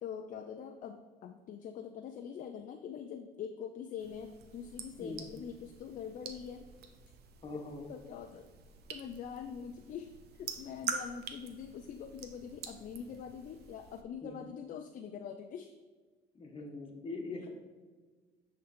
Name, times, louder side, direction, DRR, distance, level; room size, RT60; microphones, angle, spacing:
voice 1, 0.0-6.7 7.9-8.5 8.9-15.7, left 7 dB, 50° left, 6 dB, 0.5 m, -44 dB
sound 1, 4.0-14.0, right 6 dB, 70° right, 0.8 m, -46 dB
voice 2, 7.4-7.8 14.2-14.4 16.3-17.5, left 2 dB, 30° left, 2 dB, 1.4 m, -42 dB
9.6 x 3.9 x 4.3 m, 1.4 s
cardioid pair, 110°, 17 cm